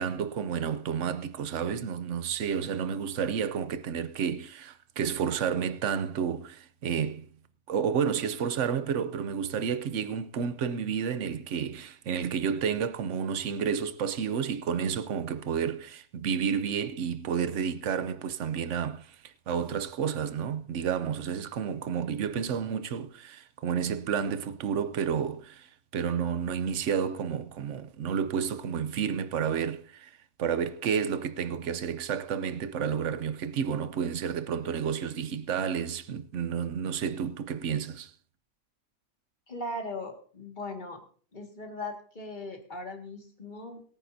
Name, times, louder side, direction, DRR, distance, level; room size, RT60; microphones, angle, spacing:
voice 1, 0.0-7.3 7.7-30.1 30.4-38.1, right 7 dB, 55° right, 0.9 m, -31 dB
voice 2, 39.5-41.0 41.3-43.8, left 2 dB, 25° left, 2.0 m, -39 dB
22.0 x 9.4 x 2.7 m
omnidirectional pair, 1.8 m